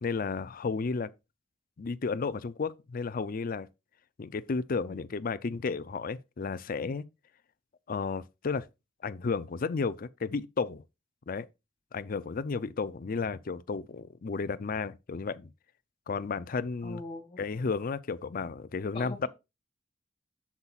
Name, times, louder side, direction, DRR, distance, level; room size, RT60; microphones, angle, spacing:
voice 1, 0.0-1.1 1.8-3.7 4.2-7.0 7.9-8.7 9.0-10.8 11.3-11.5 11.9-15.5 16.1-17.0 17.4-19.3, left 4 dB, 50° left, 0.5 m, -33 dB
voice 2, 16.8-17.6 18.9-19.3, left 2 dB, 30° left, 2.6 m, -42 dB
7.9 x 7.3 x 2.4 m
head